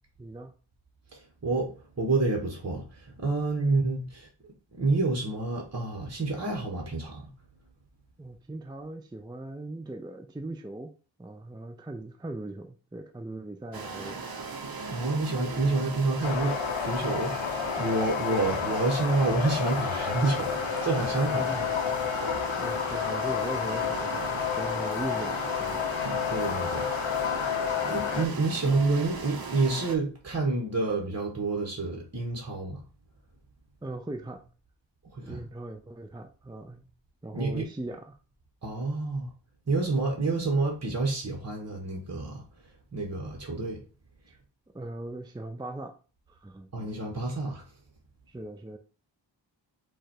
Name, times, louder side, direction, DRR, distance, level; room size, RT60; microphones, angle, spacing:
voice 1, 0.2-0.5 3.6-3.9 8.2-10.9 11.2-14.2 18.3-18.6 21.3-21.7 22.6-25.9 33.8-34.4 35.2-36.8 37.2-38.2 44.3-44.4 44.7-45.9 46.3-46.7 48.3-48.8, right 2 dB, 10° right, 0.5 m, -39 dB
voice 2, 2.0-2.8 3.2-4.3 4.8-7.2 14.9-21.4 22.5-22.6 26.3-26.9 27.8-32.8 35.1-35.4 37.3-37.7 38.6-39.3 39.7-42.4 42.9-43.8 46.7-47.6, right 3 dB, 35° right, 1.2 m, -28 dB
sound 1, 13.7-30.0, right 4 dB, 50° right, 0.9 m, -38 dB
sound 2, 16.2-28.3, left 8 dB, 85° left, 0.6 m, -30 dB
4.8 x 2.4 x 4.4 m
wide cardioid pair, 60°, 47 cm